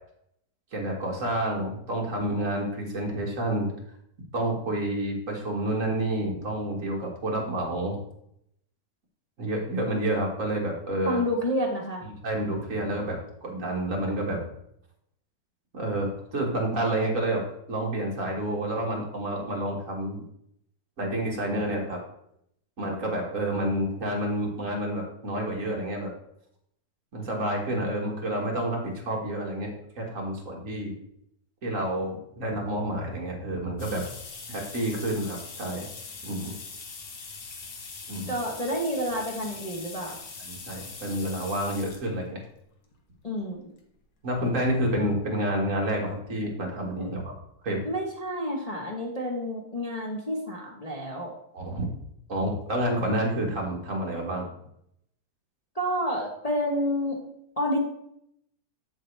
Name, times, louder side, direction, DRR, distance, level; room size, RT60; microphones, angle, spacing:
voice 1, 0.7-3.7 4.3-8.0 9.4-11.2 12.2-14.4 15.7-17.4 17.7-20.2 21.0-22.0 22.8-26.1 27.1-30.9 31.6-34.1 34.5-35.9 36.2-36.5 38.1-38.3 40.1-40.2 40.5-42.4 44.2-47.3 47.6-47.8 51.5-51.9 52.3-54.5, right 1 dB, 45° right, -1 dB, 1.9 m, -29 dB
voice 2, 11.0-12.0 38.3-40.2 43.2-43.6 47.0-47.1 47.8-51.3 55.7-57.2 57.6-57.8, equal, 25° left, -2 dB, 0.9 m, -29 dB
sound 1, 33.8-42.1 42.9-43.0 44.3-44.4 44.7-44.8 45.1-45.2, left 4 dB, 60° left, 1.6 m, -42 dB
7.6 x 7.5 x 3.3 m, 0.74 s
omnidirectional pair, 2.0 m